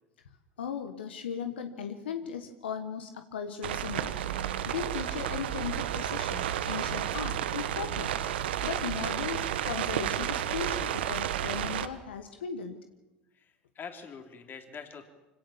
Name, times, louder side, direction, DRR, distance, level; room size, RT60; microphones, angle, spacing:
voice 1, 0.6-4.2 4.7-8.1 8.6-12.8, left 7 dB, 85° left, 7 dB, 1.4 m, -37 dB
sound 1, 3.6-11.9, right 10 dB, 80° right, 1.2 m, -32 dB
voice 2, 13.3-15.1, left 6 dB, 35° left, 6 dB, 3.5 m, -45 dB
25.0 x 17.5 x 7.3 m, 1.0 s
hypercardioid pair, 80°, 6 cm